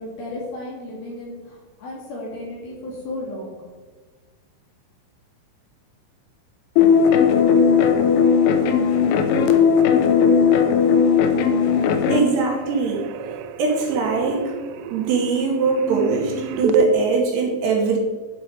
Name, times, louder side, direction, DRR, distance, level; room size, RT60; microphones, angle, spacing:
voice 1, 0.0-3.6, left 1 dB, 60° left, -4 dB, 4.0 m, -34 dB
sound 1, 6.8-12.2, left 6 dB, 90° left, 3.3 m, -17 dB
sound 2, 11.1-11.5 11.7-16.9, right 5 dB, 90° right, 3.1 m, -29 dB
voice 2, 12.1-13.1 13.6-14.5 14.9-18.0, right 4 dB, 70° right, 0 dB, 2.9 m, -21 dB
11.0 x 6.2 x 4.7 m, 1.4 s
omnidirectional pair, 5.5 m